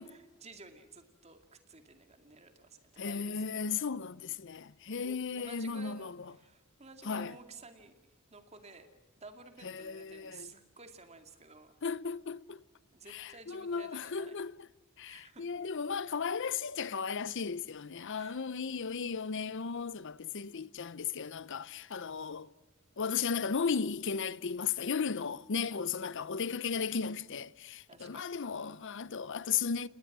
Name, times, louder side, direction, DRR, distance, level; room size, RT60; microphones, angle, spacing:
voice 1, 0.0-3.8 5.0-7.9 8.3-8.9 9.2-11.7 12.9-14.4 15.1-15.5 18.1-18.8 22.2-22.3 25.7-26.0 27.9-28.4, right 3 dB, 30° right, 2.3 m, -53 dB
voice 2, 3.0-6.3 7.0-7.3 9.6-10.5 11.8-12.6 13.1-14.7 15.0-22.5 23.0-29.9, left 6 dB, 55° left, 0.7 m, -35 dB
29.0 x 20.0 x 6.1 m
head